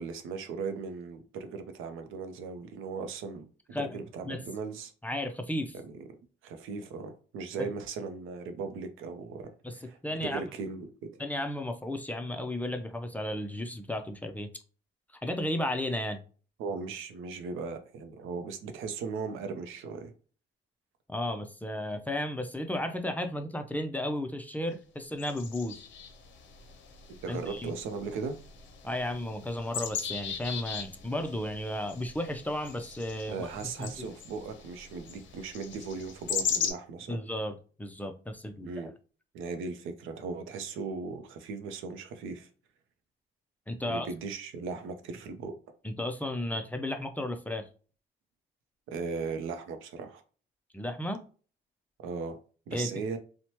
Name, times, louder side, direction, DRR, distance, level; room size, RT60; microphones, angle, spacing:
voice 1, 0.0-4.9 5.7-6.0 6.4-11.2 16.6-20.1 27.2-28.4 33.3-37.2 38.6-38.9 39.3-42.5 43.8-45.5 48.9-50.2 52.0-52.4 52.7-53.2, right 4 dB, 90° right, 8 dB, 0.5 m, -38 dB
voice 2, 5.0-5.7 7.6-7.7 9.6-9.8 10.0-10.4 11.2-14.5 15.2-16.2 21.1-25.8 27.3-27.7 28.8-33.5 33.8-34.1 37.1-38.9 43.7-44.1 45.8-47.7 50.7-51.2 52.7-52.9, left 1 dB, 10° left, 6 dB, 0.4 m, -34 dB
sound 1, 25.2-36.7, left 7 dB, 70° left, 0.6 m, -39 dB
3.0 x 2.1 x 2.8 m, 0.38 s
cardioid pair, 90°, 20 cm